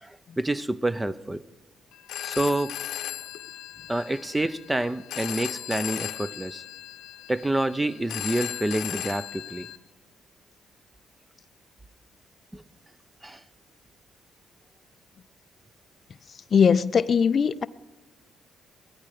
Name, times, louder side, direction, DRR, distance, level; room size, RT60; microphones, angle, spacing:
voice 1, 0.0-1.4 2.2-2.8 3.9-6.6 7.3-9.7 12.5-12.6 13.2-13.4, right 1 dB, 10° right, 0.6 m, -28 dB
Telephone, 1.9-9.8, left 12 dB, 85° left, 0.8 m, -37 dB
voice 2, 16.5-17.7, left 6 dB, 45° left, 0.4 m, -20 dB
17.0 x 13.5 x 4.9 m
cardioid pair, 90°, 0 cm